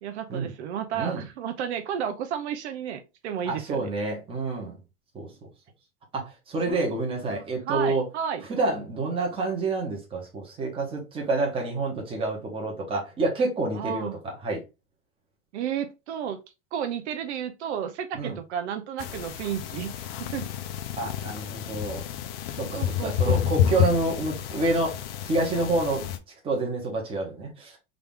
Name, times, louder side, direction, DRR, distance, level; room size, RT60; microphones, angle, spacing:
voice 1, 0.0-3.9 6.7-6.8 7.2-8.4 13.7-14.2 15.5-16.4 16.7-20.5 22.8-23.4, right 8 dB, 75° right, 0.8 m, -32 dB
voice 2, 3.4-4.8 5.1-5.5 6.1-8.1 8.5-14.6 18.1-18.4 21.0-22.0 22.6-25.0 25.2-26.1 26.4-27.8, right 2 dB, 15° right, 1.2 m, -28 dB
sound 1, 19.0-26.2, left 10 dB, 55° left, 0.8 m, -29 dB
3.8 x 2.9 x 3.6 m
supercardioid pair, 170°, 34 cm